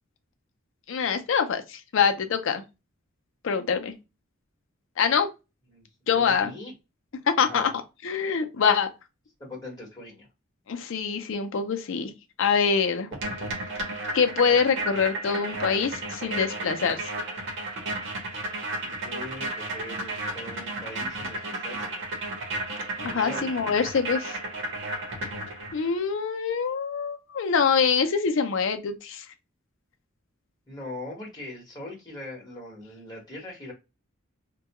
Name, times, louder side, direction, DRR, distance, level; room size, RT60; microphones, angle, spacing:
voice 1, 0.9-2.6 3.4-3.9 5.0-5.3 6.1-6.5 7.3-7.7 8.0-8.9 10.7-12.1 12.4-13.1 14.1-17.1 23.0-24.4 25.7-29.2, left 6 dB, 65° left, 0.5 m, -24 dB
voice 2, 5.7-6.7 7.4-7.7 9.4-10.3 18.8-22.0 23.1-23.4 30.7-33.7, left 1 dB, 20° left, 1.1 m, -41 dB
sound 1, 13.1-25.9, right 2 dB, 60° right, 0.9 m, -33 dB
2.2 x 2.2 x 2.8 m
head